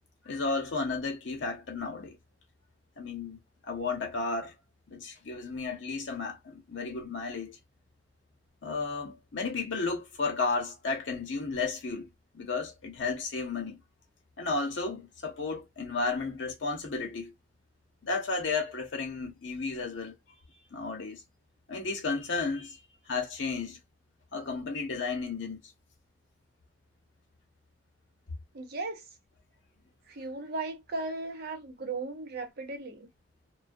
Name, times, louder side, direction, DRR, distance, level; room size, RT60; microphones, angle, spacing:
voice 1, 0.2-2.2 3.0-4.5 4.9-7.6 8.6-12.1 12.3-13.8 14.4-17.3 18.0-20.2 20.7-21.2 21.7-22.8 23.0-23.8 24.3-25.6, left 4 dB, 80° left, 0.8 m, -33 dB
voice 2, 28.5-29.1 30.1-33.1, right 3 dB, 55° right, 0.7 m, -36 dB
2.2 x 2.2 x 2.5 m
head